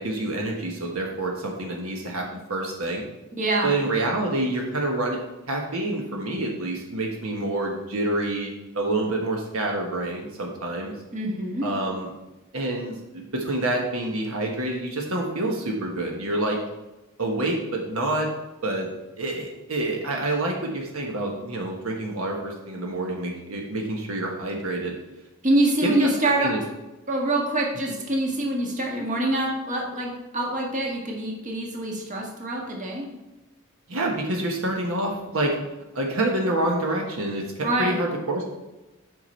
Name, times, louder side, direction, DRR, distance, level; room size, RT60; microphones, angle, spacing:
voice 1, 0.0-3.1 3.6-10.9 11.6-12.1 12.5-16.6 17.2-18.3 18.6-18.9 19.2-24.9 25.8-26.1 26.4-26.6 33.9-35.5 35.9-38.4, right 2 dB, 80° right, 1 dB, 1.3 m, -27 dB
voice 2, 3.4-3.8 11.1-11.7 25.4-26.5 27.1-33.1 37.6-37.9, right 1 dB, 35° right, 0 dB, 1.6 m, -25 dB
8.1 x 5.9 x 4.4 m, 1.0 s
head